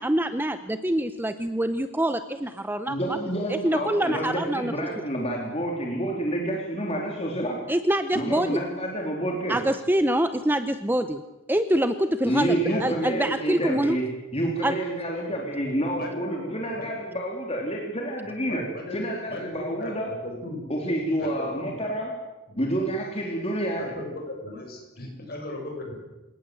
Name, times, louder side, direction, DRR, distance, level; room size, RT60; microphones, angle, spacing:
voice 1, 0.0-3.2 3.5-4.7 7.7-8.6 9.5-11.2 11.5-14.0 14.6-14.8, right 1 dB, 10° right, 10 dB, 0.7 m, -25 dB
voice 2, 2.9-7.6 8.1-9.6 12.2-14.1 14.3-18.6 18.9-20.1 20.7-22.1 22.6-23.8, right 1 dB, 25° left, 0 dB, 3.6 m, -28 dB
voice 3, 12.5-13.2 15.5-16.9 18.2-19.0 19.3-19.9 20.2-20.6 21.2-21.8 23.8-25.9, left 2 dB, 45° left, 2 dB, 7.7 m, -37 dB
28.5 x 18.0 x 7.8 m, 1.1 s
head